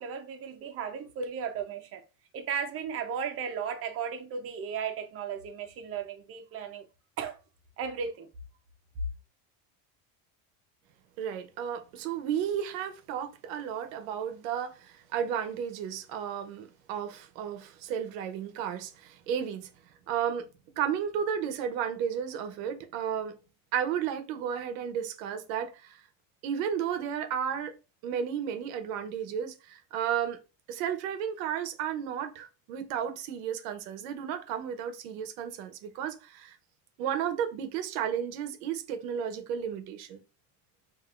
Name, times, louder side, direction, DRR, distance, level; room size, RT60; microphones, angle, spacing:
voice 1, 0.0-2.0 2.3-6.8 7.2-7.4 7.8-8.3, right 7 dB, 35° right, 0.8 m, -35 dB
voice 2, 11.2-19.7 20.1-20.5 20.8-23.4 23.7-26.0 26.4-27.7 28.0-30.4 30.7-36.6 37.0-40.2, right 8 dB, 90° right, 0.9 m, -33 dB
5.7 x 2.7 x 2.5 m
cardioid pair, 150°, 39 cm